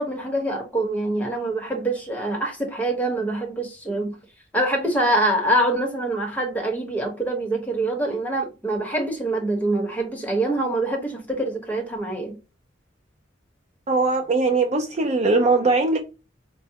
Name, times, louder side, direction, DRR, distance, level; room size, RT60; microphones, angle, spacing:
voice 1, 0.0-4.2 4.5-12.4, right 1 dB, 10° left, 1.0 m, -25 dB
voice 2, 13.9-16.0, right 3 dB, 35° right, 0.4 m, -20 dB
4.5 x 2.1 x 2.8 m
head